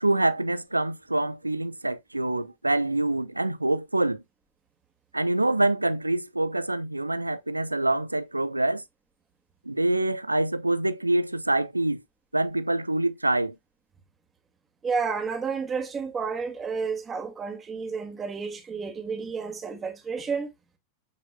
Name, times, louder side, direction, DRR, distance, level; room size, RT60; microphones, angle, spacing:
voice 1, 0.0-4.2 5.1-8.8 9.7-12.0 12.3-13.5, right 2 dB, 85° right, 0.7 m, -25 dB
voice 2, 14.8-20.5, right 5 dB, 20° right, 2.4 m, -31 dB
8.4 x 7.6 x 2.4 m
figure-of-eight pair, 90°, 0 cm